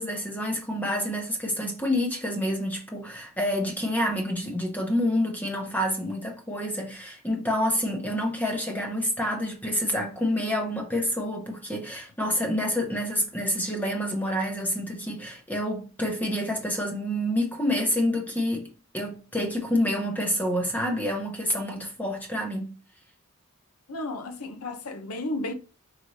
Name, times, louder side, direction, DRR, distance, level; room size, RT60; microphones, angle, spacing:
voice 1, 0.0-18.7 18.9-22.8, equal, 10° left, 0.8 m, -28 dB
voice 2, 23.9-25.5, left 2 dB, 85° left, 0.7 m, -33 dB
5.0 x 3.2 x 2.6 m
head